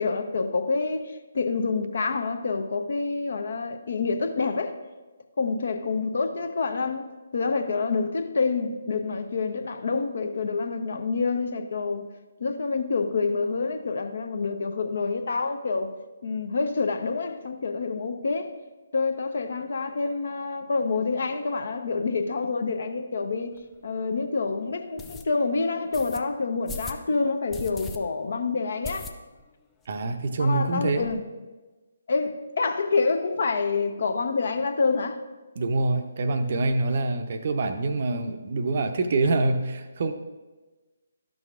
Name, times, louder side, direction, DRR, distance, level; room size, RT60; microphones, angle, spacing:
voice 1, 0.0-4.7 5.4-7.0 7.3-12.0 12.4-15.9 16.2-18.5 18.9-23.5 23.8-29.1 30.4-31.2 32.1-35.2, left 4 dB, 55° left, 7 dB, 0.7 m, -27 dB
sound 1, 23.6-23.7 24.1-24.2 25.0-25.2 25.9-26.2 26.7-27.0 27.5-28.0 28.3-28.4 28.8-29.5 29.8-29.9 30.2-30.3 30.5-31.2, left 3 dB, 10° left, 0.4 m, -38 dB
voice 2, 29.9-31.1 35.6-40.1, right 2 dB, 45° right, 8 dB, 0.6 m, -25 dB
12.0 x 6.2 x 2.5 m, 1.2 s
figure-of-eight pair, 140°, 0 cm